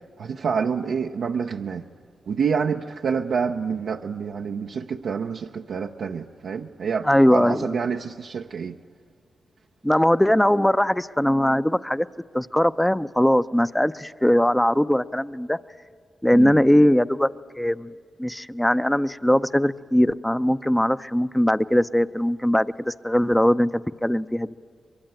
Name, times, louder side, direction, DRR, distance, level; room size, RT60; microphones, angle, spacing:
voice 1, 0.2-1.8 2.3-8.8 16.3-16.6, right 6 dB, 75° right, 0.6 m, -27 dB
voice 2, 7.0-7.8 9.8-12.1 12.3-15.6 16.2-17.3 17.6-17.9 18.2-24.5, equal, 10° left, 0.7 m, -20 dB
23.5 x 22.5 x 9.0 m
supercardioid pair, 45°, 0 cm